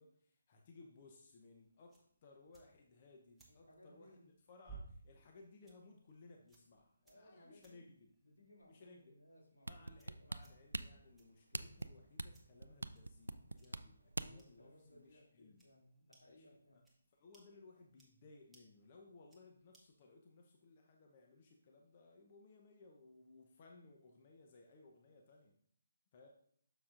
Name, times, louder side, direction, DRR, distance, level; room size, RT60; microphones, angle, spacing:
voice 1, 0.0-4.2 4.5-8.1 8.7-9.2 9.7-15.6 16.3-16.8 17.1-25.6 26.1-26.3, left 3 dB, 35° left, 2 dB, 0.8 m, -62 dB
sound 1, 0.9-20.0, right 4 dB, 5° right, 1.1 m, -65 dB
voice 2, 3.5-4.3 7.0-10.5 14.2-16.8, left 1 dB, 85° left, -3 dB, 2.7 m, -64 dB
sound 2, 9.7-14.5 15.0-15.1, right 2 dB, 80° right, 0.4 m, -43 dB
6.9 x 6.6 x 2.5 m, 0.64 s
figure-of-eight pair, 150°, 0 cm